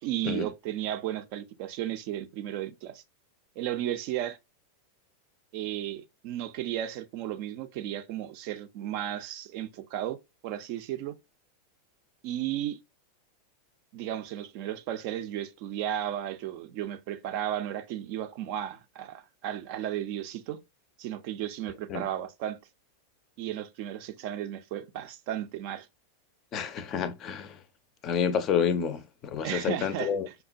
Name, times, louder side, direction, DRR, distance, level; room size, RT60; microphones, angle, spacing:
voice 1, 0.0-3.0 3.6-4.4 5.5-10.2 10.4-11.1 12.2-12.8 13.9-20.6 21.0-22.6 23.4-25.9 29.4-30.3, right 11 dB, 45° right, 0.4 m, -34 dB
voice 2, 26.5-27.5 28.0-30.3, left 7 dB, 35° left, 0.5 m, -29 dB
5.5 x 2.1 x 2.5 m
figure-of-eight pair, 90°, 0 cm